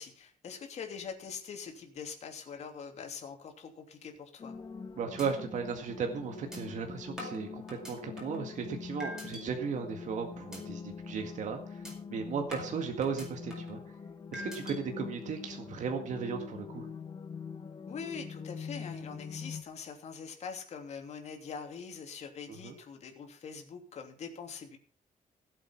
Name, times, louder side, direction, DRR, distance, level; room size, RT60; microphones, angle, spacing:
voice 1, 0.0-4.5 12.5-12.6 17.9-24.8, left 6 dB, 50° left, 3 dB, 3.0 m, -43 dB
sound 1, 4.4-19.6, left 5 dB, 30° left, 1.0 m, -44 dB
sound 2, 4.5-4.8 5.2-5.3 5.7-5.8 6.5-6.6 7.2-8.4 9.0-9.4 9.9-10.1 10.5-10.6 11.0-11.2 11.8-11.9 12.5-13.8 14.3-14.8, equal, 5° right, 5.0 m, -44 dB
voice 2, 5.0-14.0 14.3-16.9 22.5-22.8, right 6 dB, 60° right, 4 dB, 2.0 m, -36 dB
16.5 x 8.0 x 5.8 m, 0.42 s
cardioid pair, 155°, 14 cm